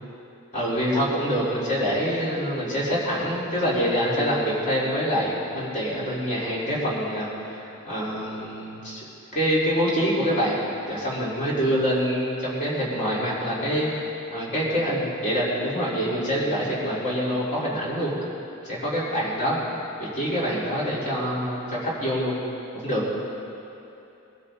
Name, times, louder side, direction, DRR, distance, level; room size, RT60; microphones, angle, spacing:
voice 1, 0.5-9.0 9.3-18.1 18.6-19.6 20.0-22.4 22.7-23.0, equal, 35° left, -7 dB, 4.2 m, -25 dB
22.5 x 13.0 x 4.1 m, 2.9 s
head